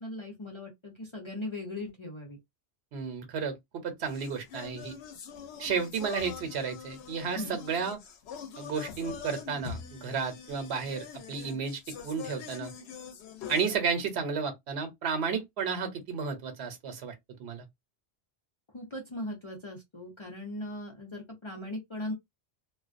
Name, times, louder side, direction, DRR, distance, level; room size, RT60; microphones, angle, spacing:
voice 1, 0.0-2.4 7.3-7.6 18.7-22.1, left 1 dB, 35° left, 0.6 m, -39 dB
voice 2, 2.9-3.6 3.8-4.9 5.6-8.0 8.6-12.7 13.5-17.1 17.4-17.7, right 6 dB, 80° right, 1.0 m, -32 dB
sound 1, 4.1-13.8, left 7 dB, 85° left, 0.8 m, -43 dB
2.3 x 2.2 x 2.4 m
omnidirectional pair, 1.1 m